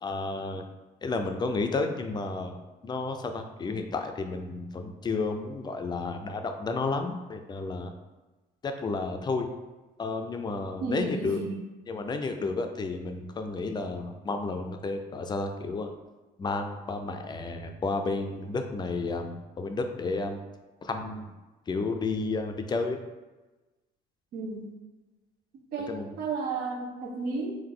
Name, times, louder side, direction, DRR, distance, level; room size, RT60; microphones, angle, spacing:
voice 1, 0.0-0.6 1.0-7.9 8.6-9.5 10.0-11.4 11.9-15.9 16.4-20.4 20.8-21.3 21.7-23.0 25.9-26.1, left 3 dB, 25° left, 5 dB, 0.4 m, -32 dB
voice 2, 10.8-11.6 24.3-24.7 25.7-27.6, right 3 dB, 70° right, -1 dB, 0.9 m, -33 dB
3.8 x 2.6 x 3.7 m, 1.2 s
cardioid pair, 110°, 17 cm